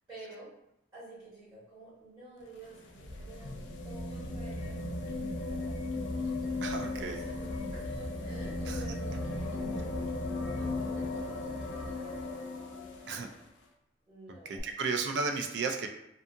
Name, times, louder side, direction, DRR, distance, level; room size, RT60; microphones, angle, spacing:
voice 1, 0.1-0.5 0.9-5.8 6.7-12.4 12.6-13.3 14.1-14.7, right 1 dB, 15° right, -15 dB, 1.1 m, -51 dB
sound 1, 2.4-13.4 14.6-14.7, left 2 dB, 70° left, 0.4 m, -36 dB
voice 2, 6.6-7.2 8.7-8.8 13.1-13.3 14.5-15.9, right 4 dB, 60° right, 5 dB, 0.3 m, -33 dB
2.6 x 2.4 x 2.5 m, 0.83 s
head